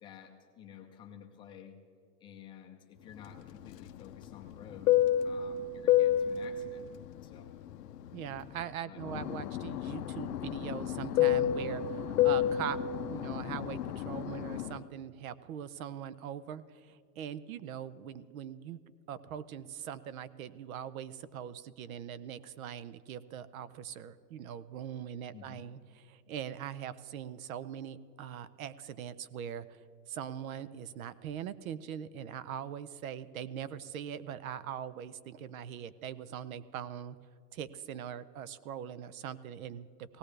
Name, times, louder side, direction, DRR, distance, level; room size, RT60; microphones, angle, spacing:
voice 1, 0.0-1.8 2.2-6.8 7.2-7.6 8.8-9.4 25.3-25.7, left 8 dB, 10° left, 2 dB, 0.5 m, -52 dB
Fixed-wing aircraft airplane, 3.3-8.6 9.0-14.8, left 11 dB, 85° left, 0.8 m, -30 dB
voice 2, 8.1-12.8 13.1-18.8 19.1-25.8 26.1-29.8 30.1-37.2 37.5-40.2, right 9 dB, 60° right, 17 dB, 0.7 m, -41 dB
18.5 x 17.0 x 3.3 m, 2.4 s
supercardioid pair, 155°, 47 cm